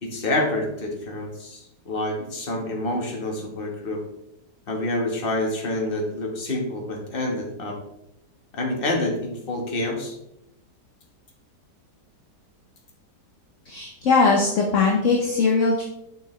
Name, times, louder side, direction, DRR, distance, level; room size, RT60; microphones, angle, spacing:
voice 1, 0.0-4.0 4.7-7.8 8.5-10.2, left 1 dB, 35° left, 1 dB, 1.4 m, -27 dB
voice 2, 13.6-15.8, left 4 dB, 50° left, 0 dB, 1.1 m, -20 dB
6.9 x 6.4 x 3.2 m, 0.83 s
omnidirectional pair, 1.9 m